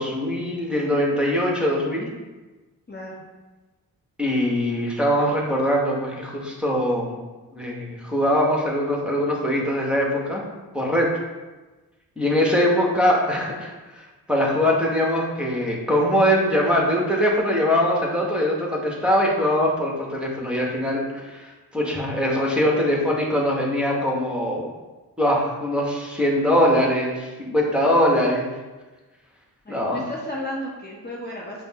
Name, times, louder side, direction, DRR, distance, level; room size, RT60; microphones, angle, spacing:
voice 1, 0.0-2.1 4.2-7.2 7.5-10.4 10.7-11.1 12.2-24.6 25.2-28.5 29.7-30.1, equal, ahead, -3 dB, 1.1 m, -22 dB
voice 2, 29.7-31.6, left 1 dB, 25° left, -4 dB, 0.8 m, -33 dB
5.0 x 2.1 x 2.9 m, 1.2 s
hypercardioid pair, 40°, 41 cm